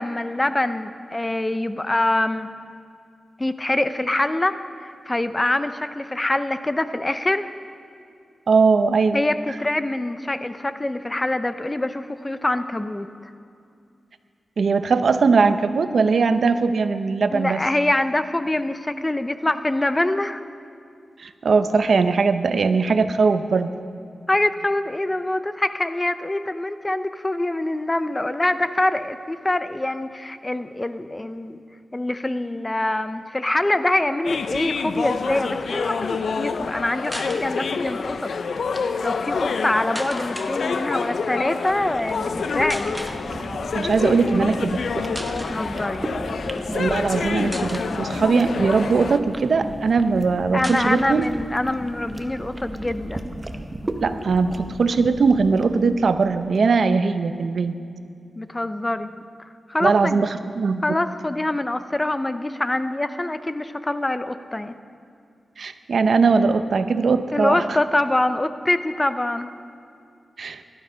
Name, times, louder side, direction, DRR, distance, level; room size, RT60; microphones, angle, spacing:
voice 1, 0.0-2.5 3.4-7.5 9.1-13.1 17.3-20.4 24.3-31.6 31.9-38.3 39.0-43.0 45.3-46.0 50.5-53.3 58.4-59.1 59.7-60.3 60.8-64.7 67.3-69.5, left 1 dB, 15° left, 11 dB, 0.5 m, -24 dB
voice 2, 8.5-9.2 14.6-17.6 21.2-23.7 43.7-44.8 46.7-51.3 54.0-57.7 59.8-60.8 65.6-67.6 70.4-70.6, right 4 dB, 60° right, 10 dB, 0.7 m, -20 dB
sound 1, 34.2-49.2, left 5 dB, 70° left, 0.6 m, -28 dB
sound 2, 37.0-37.4 38.5-38.8 40.0-40.5 41.6-41.8 42.7-43.2 44.2-44.4 44.8-44.9 45.1-45.6 46.5-47.1 47.5-47.9 48.5-49.5 49.9-50.0 50.2-50.3 50.6-51.4 51.7-51.8 52.1-53.2, equal, 5° right, 1.1 m, -37 dB
sound 3, 41.5-56.7, right 1 dB, 20° right, 0.8 m, -35 dB
18.0 x 12.0 x 5.5 m, 2.4 s
wide cardioid pair, 135°, 0 cm